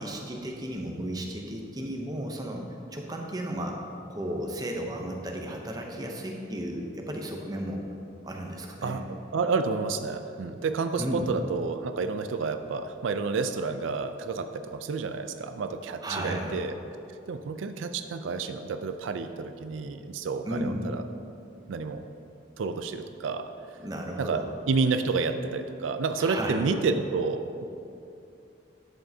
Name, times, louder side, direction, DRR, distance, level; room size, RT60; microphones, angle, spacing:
voice 1, 0.0-3.8 4.1-7.8 8.2-9.0 11.0-11.3 16.0-16.6 20.4-20.9 23.8-24.5 26.2-26.6, right 1 dB, 20° right, 1 dB, 0.7 m, -34 dB
voice 2, 9.3-16.8 17.3-21.0 21.7-22.0 22.6-23.5 24.2-27.7, right 4 dB, 90° right, 8 dB, 0.4 m, -30 dB
11.0 x 7.2 x 2.8 m, 2.7 s
head